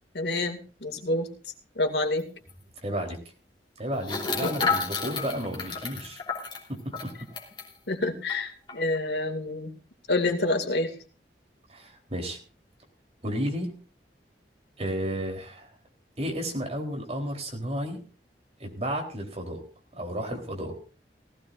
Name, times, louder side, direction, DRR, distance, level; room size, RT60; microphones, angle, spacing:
voice 1, 0.1-1.3 1.8-2.3 4.4-4.7 7.9-9.7 10.1-10.9, left 2 dB, 75° left, 5 dB, 2.5 m, -28 dB
sound 1, 2.2-2.3 2.5-2.6 4.0-7.7 8.3-8.4 8.7-9.0, left 5 dB, 25° left, 3.5 m, -31 dB
voice 2, 2.8-3.2 3.8-6.2 6.7-7.1 11.7-12.4 13.2-13.7 14.8-15.7 16.2-18.0 18.6-19.6 19.9-20.8, equal, 35° right, 2 dB, 3.8 m, -32 dB
18.5 x 16.5 x 2.6 m, 0.38 s
head